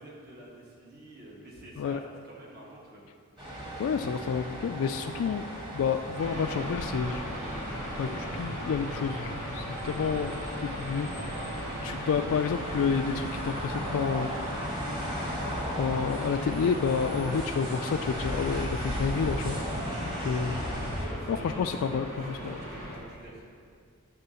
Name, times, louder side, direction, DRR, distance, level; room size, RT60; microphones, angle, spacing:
voice 1, 0.0-3.1 21.0-22.0 22.2-23.4, right 1 dB, 45° right, -5 dB, 1.5 m, -48 dB
sound 1, 3.4-21.0, equal, 25° right, 1.7 m, -36 dB
voice 2, 3.8-5.4 5.7-7.2 8.0-10.3 10.6-14.7 15.8-19.6 20.0-20.6 21.3-22.6, left 6 dB, 75° left, 5 dB, 0.3 m, -30 dB
sound 2, 6.2-23.0, equal, 85° right, 2.1 m, -38 dB
11.0 x 3.7 x 6.9 m, 2.2 s
head